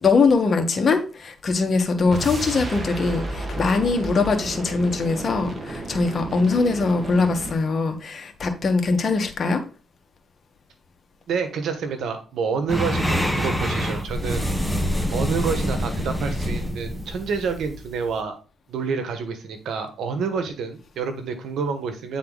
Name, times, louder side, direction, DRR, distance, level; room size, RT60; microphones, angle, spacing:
voice 1, 0.0-9.6, left 4 dB, 40° left, 1.6 m, -22 dB
sound 1, 2.1-7.7, right 2 dB, 35° right, 1.5 m, -32 dB
voice 2, 11.3-14.5 15.1-18.3 18.7-22.2, right 5 dB, 70° right, 1.5 m, -28 dB
sound 2, 12.7-18.2, equal, 5° right, 1.1 m, -26 dB
9.2 x 4.1 x 4.1 m
cardioid pair, 90°, 0 cm